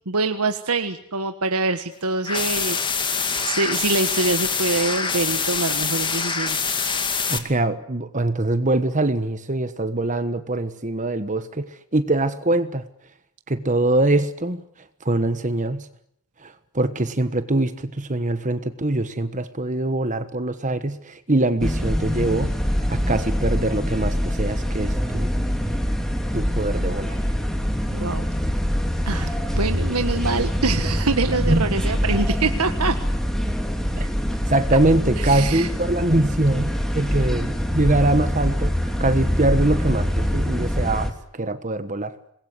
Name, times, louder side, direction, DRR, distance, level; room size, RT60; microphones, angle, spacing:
voice 1, 0.1-2.8 3.4-6.6 27.9-28.3 29.0-33.0 35.1-35.7, right 3 dB, 80° right, 7 dB, 1.5 m, -25 dB
sound 1, 2.2-7.4, left 5 dB, 20° left, 2.3 m, -25 dB
voice 2, 7.3-12.8 13.5-14.6 15.0-15.9 16.4-22.5 22.9-25.3 26.3-27.2 31.5-31.7 34.0-34.1 34.5-36.7 36.9-42.1, right 2 dB, 35° right, 11 dB, 1.3 m, -23 dB
sound 2, 21.6-41.1, equal, ahead, 3.0 m, -24 dB
27.0 x 21.5 x 9.7 m, 0.70 s
head